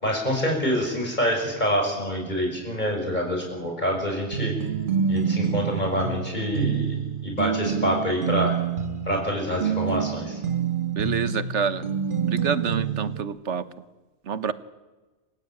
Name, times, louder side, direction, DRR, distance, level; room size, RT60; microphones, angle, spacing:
voice 1, 0.0-4.5 5.1-7.0 7.2-8.5 9.1-10.4, equal, 40° left, 1 dB, 6.1 m, -26 dB
sound 1, 4.3-13.2, right 7 dB, 50° right, 1.5 m, -27 dB
voice 2, 10.9-11.9 12.2-13.6 14.2-14.5, right 6 dB, 85° right, 14 dB, 1.4 m, -27 dB
27.5 x 15.5 x 8.7 m, 1.2 s
omnidirectional pair, 1.2 m